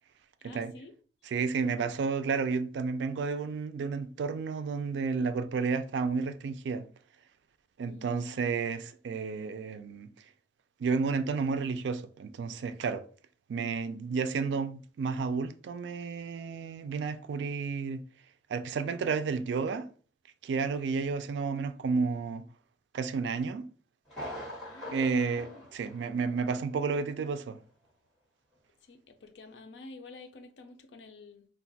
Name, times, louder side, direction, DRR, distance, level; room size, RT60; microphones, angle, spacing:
voice 1, 0.4-0.9 7.9-8.6 24.6-25.6 28.8-31.5, left 3 dB, 85° left, 0.5 m, -50 dB
voice 2, 1.2-6.8 7.8-10.1 10.8-13.0 13.5-18.0 18.5-19.9 20.4-22.5 22.9-23.7 24.9-27.6, right 5 dB, 85° right, 0.3 m, -31 dB
Thunder, 24.1-26.6 26.9-27.0 27.6-27.7, equal, ahead, 1.4 m, -43 dB
2.4 x 2.2 x 3.9 m
head